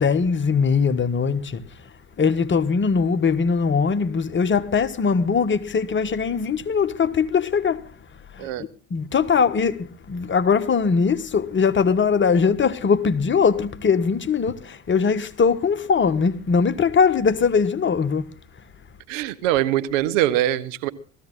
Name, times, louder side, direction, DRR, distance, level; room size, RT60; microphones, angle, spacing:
voice 1, 0.0-1.6 2.2-7.9 8.3-18.3, left 5 dB, 30° left, 1.4 m, -21 dB
voice 2, 19.1-20.9, right 13 dB, 70° right, 1.3 m, -23 dB
18.5 x 14.5 x 4.0 m
hypercardioid pair, 70°, 39 cm